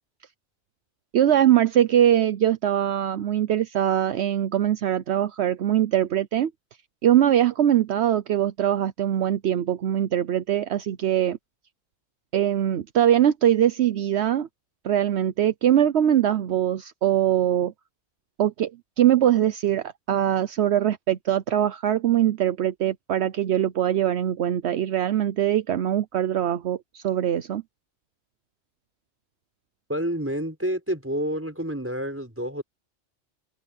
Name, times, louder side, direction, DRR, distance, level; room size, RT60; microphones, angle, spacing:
voice 1, 1.1-6.5 7.0-11.4 12.3-14.5 14.8-17.7 18.4-18.7 19.0-27.6, right 11 dB, 70° right, 1.0 m, -22 dB
voice 2, 29.9-32.6, equal, 10° right, 6.1 m, -28 dB
omnidirectional pair, 1.2 m